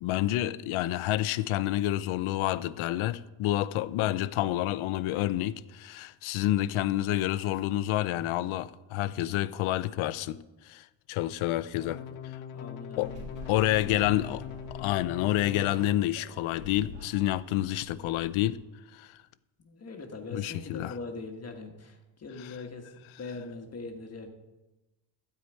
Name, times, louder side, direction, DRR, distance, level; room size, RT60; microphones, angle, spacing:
voice 1, 0.0-10.4 10.7-12.0 13.0-13.1 13.5-14.4 14.7-18.6 18.9-19.1 20.3-20.9, left 14 dB, 85° left, 0.7 m, -28 dB
sound 1, 11.7-15.8 16.6-17.1, left 9 dB, 70° left, 1.0 m, -42 dB
voice 2, 12.5-14.3 19.6-24.3, left 3 dB, 30° left, 1.5 m, -42 dB
sound 2, 13.0-18.5, equal, 55° right, 3.5 m, -48 dB
12.5 x 5.0 x 8.9 m
cardioid pair, 165°, 48 cm